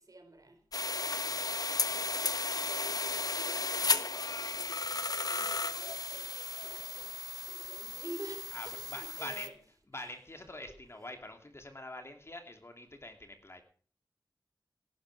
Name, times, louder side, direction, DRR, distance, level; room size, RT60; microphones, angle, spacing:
voice 1, 0.0-7.2 7.5-9.5 9.9-10.1 10.7-11.0, right 2 dB, 50° right, 4.4 m, -50 dB
sound 1, 0.7-9.5, left 3 dB, 55° left, 1.2 m, -34 dB
voice 2, 8.5-9.5 9.9-13.6, left 1 dB, 35° left, 2.9 m, -45 dB
17.5 x 11.5 x 4.9 m
wide cardioid pair, 70°, 8 cm